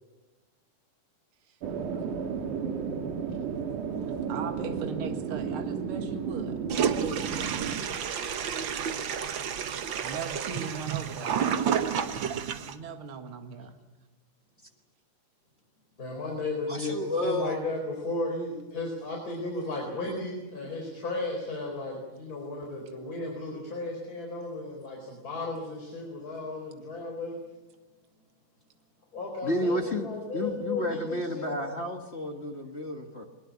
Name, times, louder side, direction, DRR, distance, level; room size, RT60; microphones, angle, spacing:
sound 1, 1.6-7.8, right 6 dB, 70° right, 3.0 m, -33 dB
voice 1, 4.3-6.6 10.0-12.2 12.7-13.8, right 6 dB, 45° right, 6 dB, 2.4 m, -39 dB
Toilet flush, 6.7-12.7, right 7 dB, 85° right, 1.0 m, -30 dB
voice 2, 16.0-27.4 29.1-31.8 32.5-32.6, left 2 dB, 25° left, 0 dB, 4.6 m, -34 dB
voice 3, 16.7-17.6 29.4-30.1 30.3-33.2, left 1 dB, 55° left, 3 dB, 0.7 m, -31 dB
22.5 x 21.5 x 8.5 m, 1.1 s
omnidirectional pair, 3.8 m